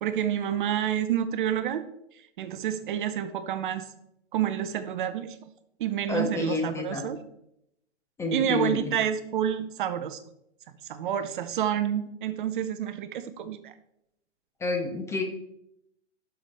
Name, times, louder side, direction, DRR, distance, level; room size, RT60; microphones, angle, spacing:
voice 1, 0.0-1.9 2.4-3.9 4.3-5.4 5.8-7.2 8.3-10.2 10.9-13.7, right 10 dB, 45° right, 12 dB, 0.7 m, -29 dB
voice 2, 6.1-7.0 8.2-8.8 14.6-15.2, left 3 dB, 10° left, 2 dB, 0.6 m, -29 dB
11.5 x 5.8 x 3.4 m, 0.79 s
hypercardioid pair, 135°, 36 cm